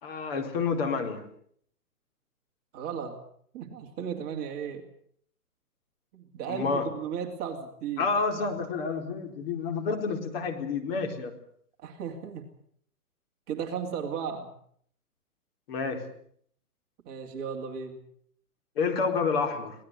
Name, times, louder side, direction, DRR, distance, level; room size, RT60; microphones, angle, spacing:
voice 1, 0.0-1.2 6.5-6.9 8.0-11.3 15.7-16.0 18.8-19.7, left 4 dB, 40° left, 5 dB, 4.4 m, -29 dB
voice 2, 2.7-3.2 3.5-4.8 6.1-8.1 11.8-12.5 13.5-14.5 17.1-18.0, right 7 dB, 20° right, 2 dB, 2.6 m, -35 dB
25.5 x 18.5 x 8.1 m, 0.64 s
hypercardioid pair, 155°, 46 cm